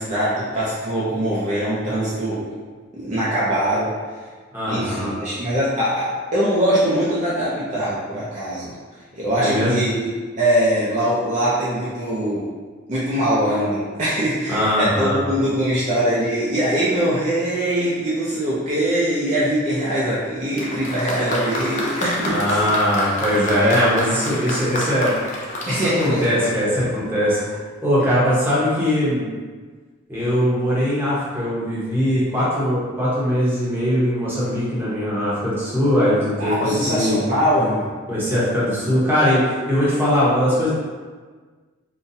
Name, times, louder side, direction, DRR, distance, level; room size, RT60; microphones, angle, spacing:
voice 1, 0.0-2.5 2.9-3.9 4.7-8.7 9.1-10.1 10.4-12.5 12.9-22.7 23.5-24.0 25.7-26.2 36.4-37.9, equal, 35° right, -9 dB, 0.5 m, -22 dB
voice 2, 4.5-5.2 9.4-9.7 14.5-15.2 22.3-25.1 25.7-27.4 27.8-29.2 30.1-37.2 38.1-40.7, equal, 10° right, -9 dB, 0.8 m, -20 dB
Applause, 20.6-27.0 27.9-28.0, left 1 dB, 35° left, 0.4 m, -29 dB
3.9 x 2.3 x 2.6 m, 1.5 s
head